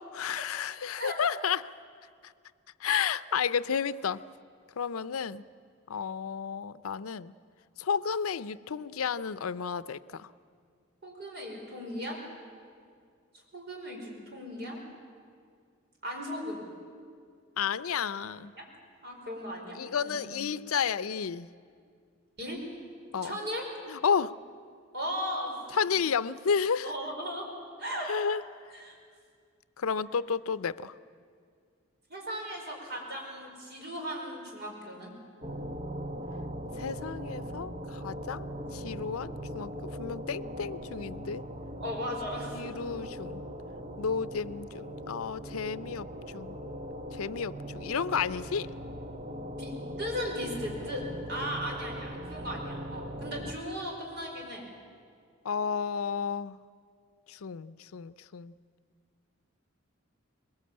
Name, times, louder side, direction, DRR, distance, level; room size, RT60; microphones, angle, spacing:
voice 1, 0.1-1.7 2.8-4.2 4.8-5.4 5.9-7.3 7.8-10.3 17.6-18.5 19.8-21.5 23.1-23.3 23.9-24.4 25.7-26.9 28.1-28.4 29.8-30.9 36.8-38.5 38.7-39.7 40.0-41.4 42.5-43.4 44.0-46.1 46.3-46.6 47.1-48.7 55.4-56.6 57.3-58.5, left 6 dB, 85° left, 16 dB, 0.5 m, -31 dB
voice 2, 11.0-12.2 13.5-14.8 16.0-16.7 18.3-18.6 19.0-19.8 20.0-20.4 22.4-22.6 23.2-23.7 24.9-26.0 26.8-27.5 27.8-28.1 28.7-28.9 32.1-35.1 41.8-43.0 49.6-54.7, equal, 50° right, 0 dB, 4.9 m, -37 dB
sound 1, 35.4-53.5, equal, 30° right, 1.0 m, -40 dB
21.5 x 21.0 x 8.7 m, 2.2 s
head